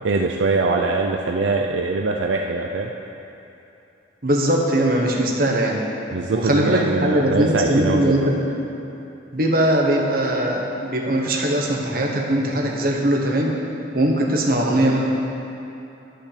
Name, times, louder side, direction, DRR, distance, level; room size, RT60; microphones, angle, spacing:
voice 1, 0.0-2.9 6.1-8.3, right 3 dB, 80° right, 2 dB, 0.5 m, -22 dB
voice 2, 4.2-5.8 6.3-8.4 9.3-13.6 13.9-15.0, right 1 dB, 50° right, 0 dB, 1.2 m, -20 dB
11.5 x 5.5 x 6.8 m, 2.9 s
head